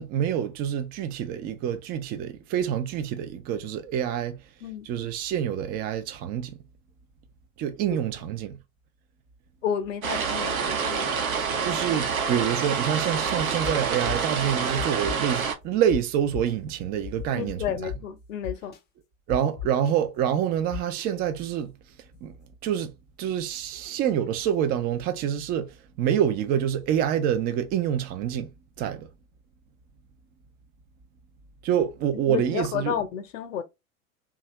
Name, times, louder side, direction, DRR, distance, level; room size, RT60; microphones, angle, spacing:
voice 1, 0.0-4.4 4.9-6.6 7.6-8.6 11.6-17.9 19.3-21.7 22.2-22.3 22.6-22.9 23.2-28.5 28.8-29.1 31.6-33.0, right 9 dB, 25° right, 0.4 m, -27 dB
voice 2, 4.6-4.9 9.6-11.3 17.3-18.7 32.3-33.6, left 9 dB, 65° left, 0.8 m, -31 dB
sound 1, 10.0-15.5, right 6 dB, 80° right, 0.8 m, -27 dB
sound 2, 13.6-13.7 14.0-14.3 14.8-15.4 15.9-16.0 16.3-16.5 17.0-18.0 18.4-18.8 19.3-19.9 20.7-21.0, left 11 dB, 25° left, 0.6 m, -35 dB
2.7 x 2.3 x 3.0 m
figure-of-eight pair, 90°, 42 cm